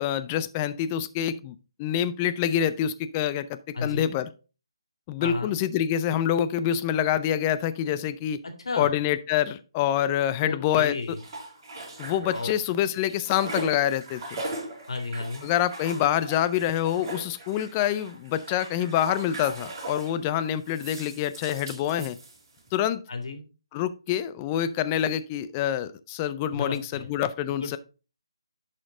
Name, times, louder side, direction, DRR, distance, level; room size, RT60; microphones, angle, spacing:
voice 1, 0.0-4.3 5.1-8.4 8.8-11.2 12.0-14.4 15.4-22.2 22.7-23.0 23.7-27.8, left 10 dB, 20° left, 13 dB, 0.4 m, -26 dB
voice 2, 3.7-4.1 5.2-5.5 8.6-8.9 10.4-11.2 12.0-12.5 14.9-15.5 23.1-23.4 26.5-27.1 27.6-27.8, left 3 dB, 75° left, 5 dB, 2.1 m, -33 dB
sound 1, 10.7-12.7 13.0-20.2 20.6-22.7, right 2 dB, 30° right, 4.4 m, -39 dB
11.0 x 4.4 x 3.7 m, 0.33 s
hypercardioid pair, 160°, 3 cm